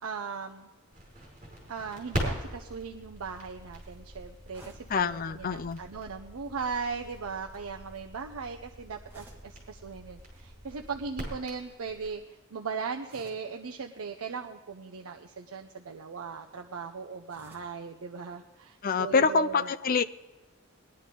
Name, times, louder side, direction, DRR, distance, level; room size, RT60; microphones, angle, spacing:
voice 1, 0.0-0.7 1.7-5.1 5.3-19.7, right 5 dB, 75° right, 3 dB, 0.6 m, -38 dB
Crackle, 0.9-12.1, equal, 35° right, 5.0 m, -41 dB
sound 1, 4.5-5.0 6.7-7.0 9.1-9.6 10.2-10.4 13.0-13.6 14.9-15.3 17.3-17.8, right 1 dB, 10° right, 2.1 m, -55 dB
voice 2, 4.9-5.8 18.8-20.0, left 5 dB, 40° left, 13 dB, 0.4 m, -26 dB
20.0 x 11.0 x 3.8 m, 1.2 s
head